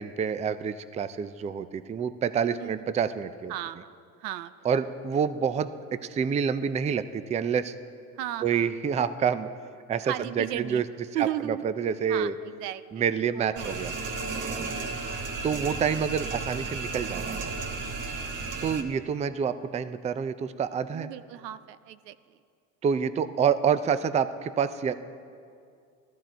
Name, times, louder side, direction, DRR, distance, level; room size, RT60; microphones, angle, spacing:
voice 1, 0.0-3.5 4.6-5.7 6.1-7.7 8.4-9.5 9.9-10.8 11.2-12.3 12.9-13.9 15.4-17.5 18.6-21.1 22.8-24.9, right 7 dB, 15° right, 13 dB, 0.4 m, -27 dB
voice 2, 3.5-4.5 8.2-8.7 10.0-10.8 11.1-11.7 12.1-13.0 13.3-13.9 15.0-15.3 20.9-22.2, right 12 dB, 90° right, 14 dB, 0.7 m, -35 dB
sound 1, 13.6-18.8, right 4 dB, 40° right, 1.4 m, -33 dB
18.0 x 13.5 x 4.5 m, 2.3 s
supercardioid pair, 90°, 47 cm